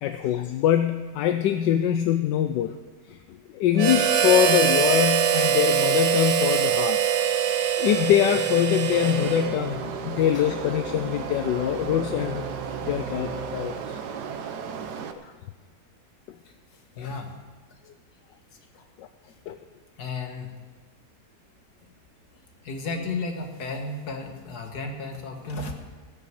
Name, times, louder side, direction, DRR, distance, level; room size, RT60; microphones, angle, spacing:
voice 1, 0.0-2.8 3.1-7.0 7.8-12.5 12.8-14.0 15.2-15.3 17.0-17.1 19.0-19.1 19.5-19.6, left 11 dB, 80° left, 9 dB, 1.2 m, -24 dB
Harmonica, 3.8-9.8, right 9 dB, 90° right, 1.5 m, -23 dB
sound 1, 8.1-14.2, right 3 dB, 35° right, 1.3 m, -38 dB
sound 2, 8.9-15.1, right 7 dB, 65° right, 1.3 m, -35 dB
voice 2, 17.0-17.3 18.7-18.8 19.2-19.3 20.0-20.5 22.6-25.7, left 3 dB, 60° left, 3 dB, 2.0 m, -33 dB
17.5 x 6.6 x 7.6 m, 1.4 s
omnidirectional pair, 1.9 m